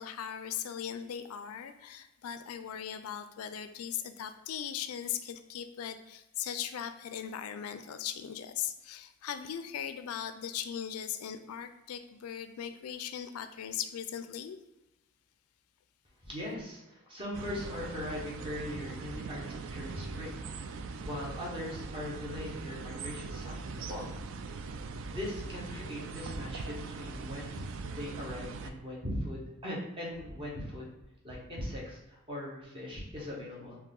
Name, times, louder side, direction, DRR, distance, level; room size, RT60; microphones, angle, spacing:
voice 1, 0.0-14.6, left 9 dB, 80° left, 10 dB, 0.4 m, -39 dB
voice 2, 16.2-20.5 21.0-24.1 25.1-27.6 28.0-30.9 31.2-33.8, left 1 dB, 25° right, -4 dB, 1.2 m, -40 dB
sound 1, 17.3-28.7, right 4 dB, 60° right, 0.3 m, -41 dB
4.6 x 2.7 x 3.8 m, 0.98 s
head